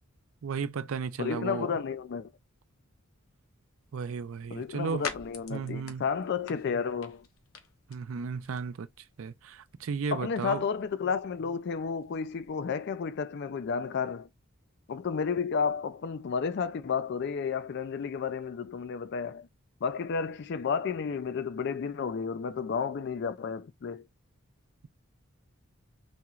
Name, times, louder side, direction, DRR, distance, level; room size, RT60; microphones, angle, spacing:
voice 1, 0.4-1.7 3.9-5.1 5.5-6.0 7.9-10.6, right 5 dB, 70° right, 0.4 m, -34 dB
voice 2, 1.2-2.3 4.5-7.2 10.1-14.3 14.9-19.5 19.8-24.0, left 6 dB, 50° left, 0.4 m, -32 dB
sound 1, 3.8-12.5, left 6 dB, 75° left, 0.7 m, -48 dB
4.2 x 2.9 x 2.4 m
head